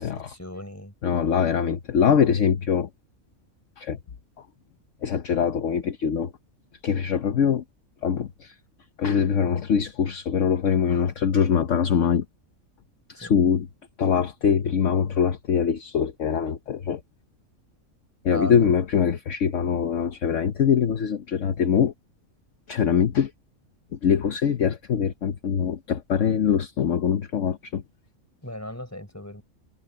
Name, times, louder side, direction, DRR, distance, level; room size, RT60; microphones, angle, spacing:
voice 1, 0.3-0.9 13.1-13.3 18.3-18.7 28.4-29.4, equal, 10° left, 5.4 m, -36 dB
voice 2, 1.0-2.9 3.8-4.0 5.0-6.3 6.8-7.6 8.0-8.5 9.0-12.2 13.2-13.7 14.0-17.0 18.2-21.9 22.7-23.3 24.0-27.8, left 7 dB, 60° left, 1.2 m, -23 dB
omnidirectional pair, 1.5 m